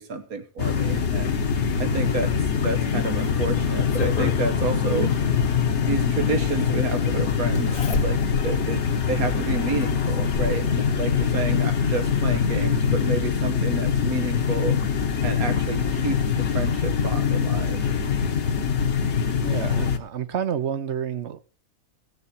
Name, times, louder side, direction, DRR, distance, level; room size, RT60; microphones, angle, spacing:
voice 1, 0.0-1.4 1.8-2.3 2.6-5.1 5.9-8.2 8.4-8.8 9.1-14.8 15.2-17.8, right 3 dB, 85° right, 1.8 m, -30 dB
sound 1, 0.6-20.0, left 6 dB, 55° left, 1.4 m, -23 dB
Zipper (clothing), 2.6-4.4 5.8-5.9 7.5-8.5 9.0-9.1 9.8-10.6 11.8-11.9 12.3-12.4, left 4 dB, 85° left, 1.9 m, -32 dB
voice 2, 19.4-21.4, right 8 dB, 55° right, 1.1 m, -29 dB
18.0 x 6.7 x 4.4 m
omnidirectional pair, 1.5 m